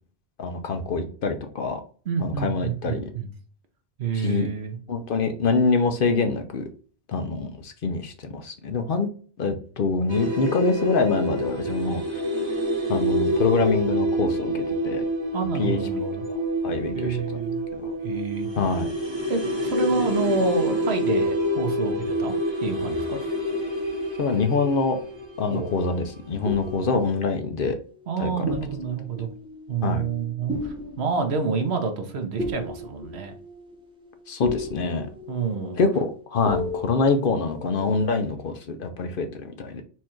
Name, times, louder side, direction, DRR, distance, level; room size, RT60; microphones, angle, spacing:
voice 1, 0.4-1.8 2.2-3.0 4.1-4.5 4.9-6.7 7.1-9.1 9.4-12.2 12.9-15.0 15.6-15.8 16.3-16.4 16.6-17.2 17.7-17.9 18.6-18.9 24.2-25.0 25.4-27.8 28.2-28.4 29.8-30.0 34.3-35.1 35.8-39.8, left 4 dB, 60° left, 7 dB, 0.8 m, -25 dB
voice 2, 2.1-3.3 4.0-4.8 15.3-16.2 16.9-17.6 18.0-18.5 19.3-22.3 22.6-23.3 25.5-25.7 28.1-29.3 29.7-33.4 35.3-35.8, right 5 dB, 75° right, 6 dB, 1.1 m, -28 dB
sound 1, 10.1-26.8 27.1-27.2, equal, 25° right, 1.0 m, -27 dB
sound 2, 24.9-25.9 26.4-28.2 28.5-38.0, left 2 dB, 5° right, 0.9 m, -36 dB
4.4 x 2.5 x 4.3 m, 0.42 s
omnidirectional pair, 1.1 m